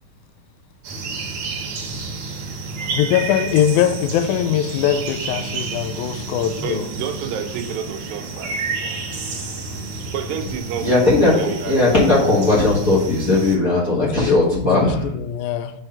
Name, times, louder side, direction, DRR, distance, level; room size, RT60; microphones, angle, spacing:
sound 1, 0.8-13.6, right 4 dB, 60° right, 2.3 m, -30 dB
voice 1, 2.9-6.8 14.0-14.4 14.6-15.7, left 10 dB, 85° left, 8 dB, 1.7 m, -21 dB
voice 2, 6.6-9.3 10.1-11.1 11.4-11.8, right 7 dB, 85° right, 5 dB, 2.5 m, -30 dB
voice 3, 10.8-15.1, left 2 dB, 60° left, -7 dB, 0.9 m, -17 dB
6.3 x 3.4 x 5.6 m, 0.75 s
omnidirectional pair, 4.1 m